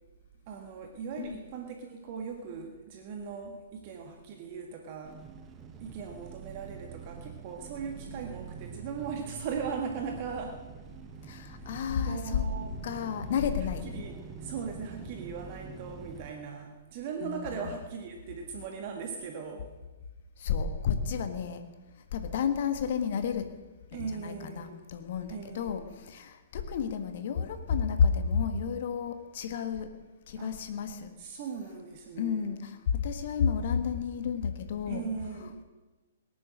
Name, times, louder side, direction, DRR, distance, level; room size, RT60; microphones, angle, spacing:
voice 1, 0.5-5.2 5.8-10.6 11.6-11.8 12.0-12.8 13.8-19.7 23.9-24.8 25.3-25.9 30.4-30.5 31.2-32.5 34.9-35.6, right 6 dB, 40° right, 3 dB, 1.6 m, -39 dB
sound 1, 5.0-16.3, right 6 dB, 20° right, 1.1 m, -45 dB
voice 2, 11.3-12.4 12.8-13.9 17.2-17.7 20.4-21.6 22.1-23.5 23.9-29.9 30.3-31.1 32.2-35.0 35.4-35.6, left 7 dB, 50° left, 8 dB, 1.6 m, -31 dB
18.0 x 10.5 x 6.5 m, 1.2 s
figure-of-eight pair, 115°, 0 cm